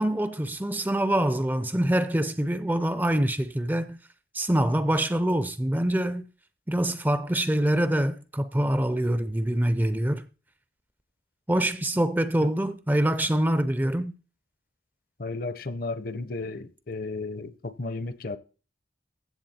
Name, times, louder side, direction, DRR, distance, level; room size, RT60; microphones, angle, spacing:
voice 1, 0.0-4.0 4.3-6.3 6.7-10.3 11.5-14.1, right 1 dB, 10° right, 0.5 m, -25 dB
voice 2, 15.2-18.4, left 3 dB, 50° left, 0.7 m, -33 dB
15.0 x 7.3 x 4.3 m
head